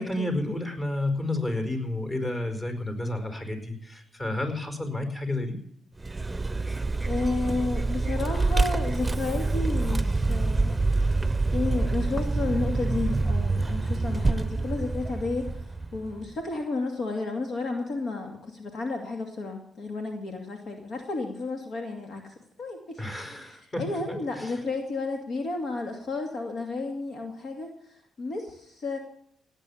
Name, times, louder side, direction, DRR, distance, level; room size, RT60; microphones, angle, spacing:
voice 1, 0.0-5.6 23.0-23.8 24.3-24.6, left 1 dB, 30° left, 6 dB, 5.2 m, -31 dB
Vehicle, 6.0-16.3, right 3 dB, 20° right, 0.8 m, -26 dB
voice 2, 7.0-10.7 11.2-29.0, left 3 dB, 65° left, 3 dB, 2.4 m, -32 dB
18.0 x 9.1 x 7.3 m, 0.71 s
supercardioid pair, 60°, 0 cm